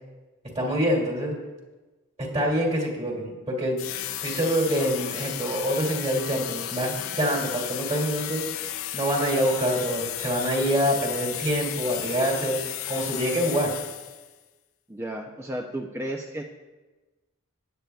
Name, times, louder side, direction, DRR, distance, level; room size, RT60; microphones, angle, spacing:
voice 1, 0.5-1.3 2.2-3.8 4.2-8.4 8.9-12.5 12.9-13.7, equal, 30° right, -2 dB, 2.4 m, -26 dB
sound 1, 3.8-14.3, left 12 dB, 70° left, 0.5 m, -34 dB
voice 2, 14.9-16.4, right 1 dB, 10° right, 2 dB, 0.5 m, -33 dB
17.0 x 9.0 x 2.3 m, 1.2 s
head